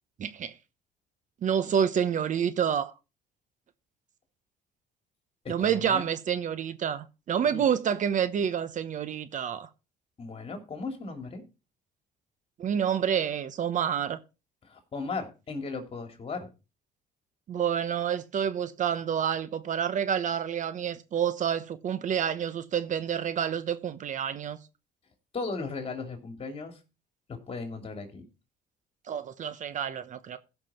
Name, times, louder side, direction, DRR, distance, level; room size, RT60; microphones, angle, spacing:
voice 1, 0.2-0.5 1.4-2.9 5.5-9.7 12.6-14.2 17.5-24.6 29.1-30.4, right 8 dB, 50° right, 1.0 m, -28 dB
voice 2, 5.4-6.1 7.4-7.6 10.2-11.4 14.7-16.5 25.3-26.7 27.3-28.2, left 4 dB, 35° left, 3.1 m, -36 dB
16.0 x 6.0 x 4.4 m
cardioid pair, 110°, 17 cm